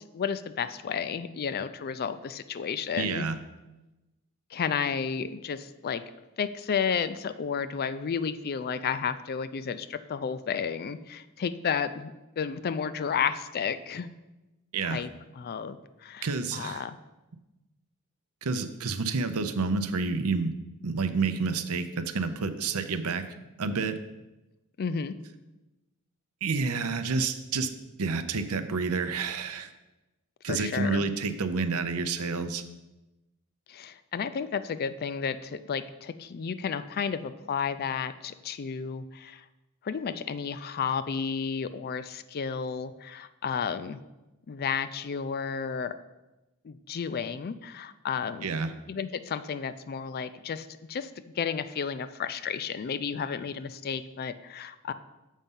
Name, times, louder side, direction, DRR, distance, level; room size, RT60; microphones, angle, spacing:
voice 1, 0.0-3.3 4.5-6.0 6.4-14.1 14.8-15.1 15.4-17.0 24.8-25.1 30.5-31.0 33.7-39.4 39.8-44.0 44.5-45.9 46.6-48.5 48.9-51.1 51.4-54.9, left 6 dB, 45° left, 12 dB, 0.4 m, -32 dB
voice 2, 3.0-3.4 14.7-15.0 16.2-16.9 18.4-20.5 20.8-23.2 23.6-24.0 26.4-27.7 28.0-29.7 30.4-32.6 48.4-48.7, right 4 dB, 75° right, 10 dB, 0.6 m, -29 dB
7.3 x 5.4 x 5.4 m, 1.0 s
head